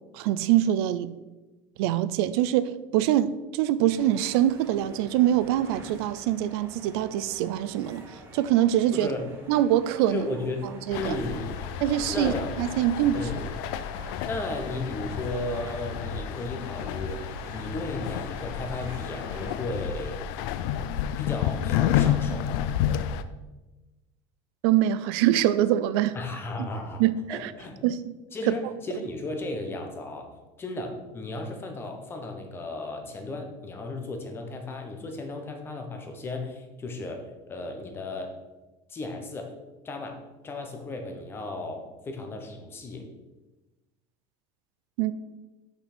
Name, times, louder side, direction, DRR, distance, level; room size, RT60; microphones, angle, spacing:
voice 1, 0.1-1.1 1.8-8.0 8.3-9.1 9.5-10.2 10.9-11.2 11.8-12.3 12.6-13.2 24.6-26.2 27.0-27.5 27.8-28.1 28.5-28.6 45.0-45.1, right 12 dB, 80° right, 14 dB, 0.4 m, -24 dB
sound 1, 3.9-20.1, right 2 dB, 20° right, 1.0 m, -47 dB
voice 2, 8.9-9.3 10.0-10.6 11.0-11.5 12.1-12.5 13.1-13.7 14.2-20.3 21.2-22.6 26.1-27.0 27.3-27.8 28.3-30.3 30.6-38.3 38.9-39.5 39.8-43.1, left 2 dB, 15° left, 4 dB, 0.7 m, -35 dB
sound 2, 10.9-23.2, left 10 dB, 70° left, 0.4 m, -30 dB
5.9 x 5.1 x 4.2 m, 1.1 s
cardioid pair, 175°, 13 cm